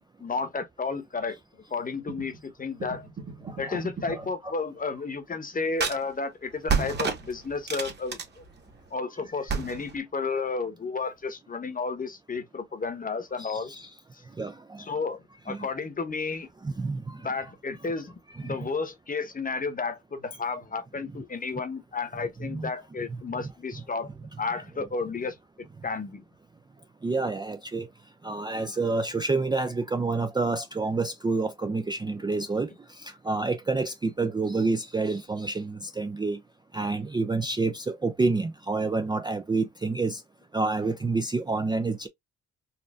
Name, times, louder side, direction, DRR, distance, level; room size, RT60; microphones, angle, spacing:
voice 1, 0.2-1.4 1.7-3.1 3.6-8.2 8.9-13.7 14.8-16.5 17.2-24.1 24.4-25.4 25.8-26.2, left 4 dB, 30° left, 1.0 m, -32 dB
sound 1, 2.1-2.4 2.8-4.3 5.8-6.0 6.7-8.9 9.5-10.0, right 5 dB, 35° right, 1.3 m, -32 dB
voice 2, 3.4-3.8 4.1-4.5 13.4-13.9 14.4-14.9 15.5-15.7 16.6-17.3 18.3-18.7 22.4-22.7 23.1-23.2 27.0-27.9 28.2-36.4 36.7-40.2 40.5-42.1, right 3 dB, 15° right, 0.4 m, -28 dB
4.2 x 2.5 x 2.3 m
cardioid pair, 90°, 30 cm